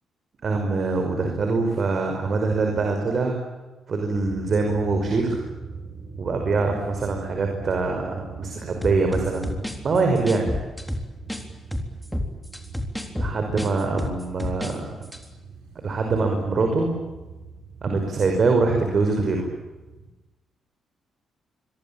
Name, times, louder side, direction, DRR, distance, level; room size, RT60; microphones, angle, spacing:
voice 1, 0.4-3.4 3.9-5.4 6.2-10.5 13.2-14.8 15.8-16.9 17.8-19.5, right 3 dB, 45° right, 3 dB, 5.5 m, -24 dB
sound 1, 4.1-20.1, right 5 dB, 90° right, 7.8 m, -42 dB
sound 2, 8.8-11.4 11.7-14.8 15.0-15.2, left 1 dB, 5° left, 3.6 m, -30 dB
26.0 x 23.5 x 8.9 m, 1.1 s
cardioid pair, 120°, 0 cm